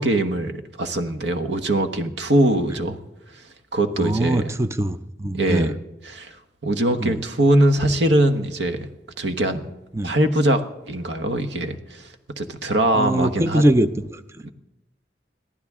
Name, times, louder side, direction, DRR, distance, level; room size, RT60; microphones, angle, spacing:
voice 1, 0.0-3.0 3.7-4.5 5.3-5.8 6.0-6.4 6.6-8.9 9.2-9.6 10.0-12.1 12.4-13.6 14.4-14.5, right 1 dB, 80° right, 8 dB, 1.2 m, -22 dB
voice 2, 4.0-5.7 7.0-7.2 9.9-10.2 12.9-14.4, right 1 dB, 15° right, 12 dB, 0.5 m, -22 dB
22.0 x 14.5 x 3.7 m, 0.98 s
head